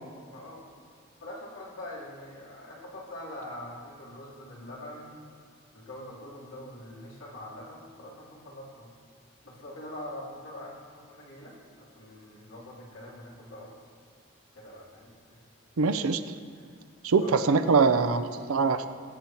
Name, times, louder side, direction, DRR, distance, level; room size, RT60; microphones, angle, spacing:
voice 1, 0.3-0.6 1.2-5.2 5.7-8.9 9.4-13.9 14.5-15.4 16.5-16.6 17.2-17.4, left 1 dB, 90° left, -5 dB, 3.4 m, -44 dB
voice 2, 15.8-16.2 17.0-18.9, right 4 dB, 90° right, 9 dB, 0.6 m, -23 dB
20.0 x 8.4 x 3.0 m, 2.2 s
head